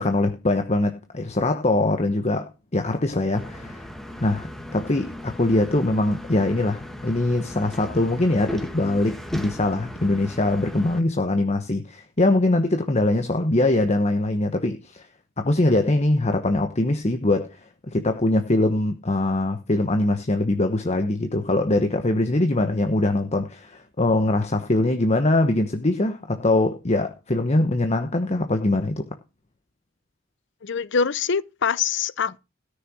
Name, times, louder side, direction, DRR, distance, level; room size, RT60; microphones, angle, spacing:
voice 1, 0.0-3.9 4.2-15.1 15.4-17.6 17.9-29.0, left 2 dB, 35° left, 1.1 m, -22 dB
sound 1, 3.3-11.0, left 1 dB, ahead, 1.5 m, -37 dB
voice 2, 30.6-32.4, left 6 dB, 65° left, 0.6 m, -24 dB
13.5 x 6.6 x 6.2 m
head